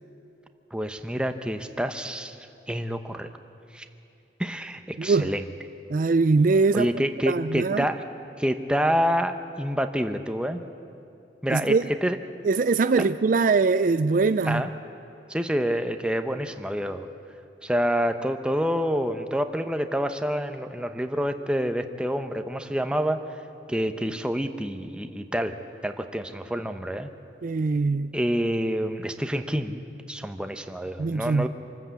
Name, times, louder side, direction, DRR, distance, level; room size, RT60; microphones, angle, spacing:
voice 1, 0.7-2.4 2.7-3.3 3.7-3.9 4.4-5.5 6.7-8.0 8.4-10.6 11.4-11.8 12.0-12.2 13.0-13.1 14.4-14.7 15.3-17.1 17.6-23.2 23.7-25.6 25.8-27.1 28.1-31.5, equal, 5° right, 0.8 m, -27 dB
voice 2, 5.0-5.3 5.9-6.9 7.3-7.8 11.5-11.9 12.4-14.6 27.4-28.1 31.0-31.5, right 4 dB, 45° right, 0.4 m, -22 dB
26.0 x 13.5 x 8.3 m
head